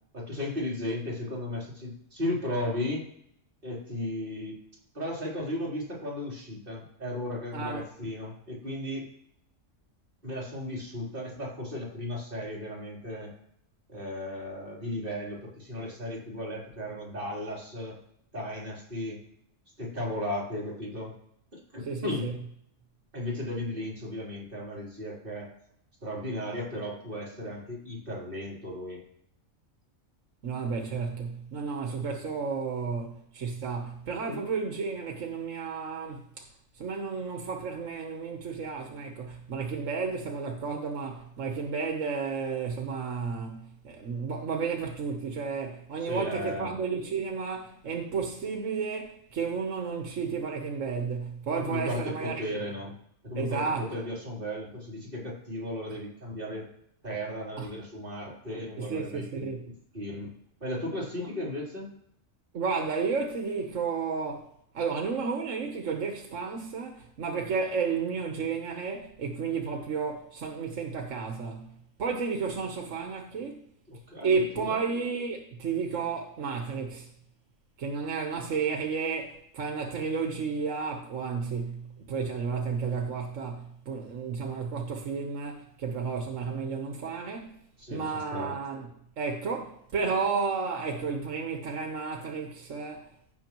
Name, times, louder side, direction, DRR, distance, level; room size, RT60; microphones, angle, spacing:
voice 1, 0.1-3.0 3.6-4.6 4.9-9.1 10.2-13.3 13.9-18.0 18.3-19.2 19.8-21.2 21.5-22.3 23.1-25.5 26.0-29.0 34.3-34.4 46.1-46.8 51.5-52.9 53.2-56.7 57.0-60.3 60.6-61.9 73.9-74.8 87.8-88.6, left 1 dB, 45° right, 3.7 m, -35 dB
voice 2, 21.9-22.3 30.4-36.5 36.7-52.6 53.3-54.0 57.6-57.7 58.8-59.7 61.2-61.3 62.5-71.7 72.0-73.7 74.2-77.1 77.8-87.6 87.9-88.9 89.2-93.1, right 5 dB, 75° right, 1.4 m, -32 dB
16.0 x 6.2 x 3.0 m
omnidirectional pair, 1.3 m